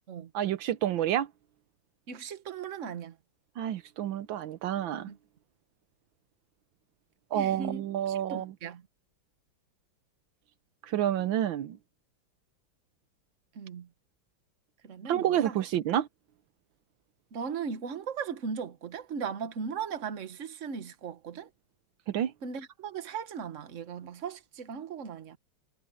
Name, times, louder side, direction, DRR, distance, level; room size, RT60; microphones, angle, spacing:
voice 1, 0.3-1.3 3.6-5.1 7.3-8.5 10.9-11.8 15.1-16.1 22.1-22.3, right 11 dB, 80° right, 1.6 m, -29 dB
voice 2, 2.1-3.1 5.1-5.2 7.3-8.8 13.5-13.9 14.8-15.6 17.3-21.5 22.4-25.4, right 6 dB, 45° right, 1.5 m, -38 dB
omnidirectional pair, 2.1 m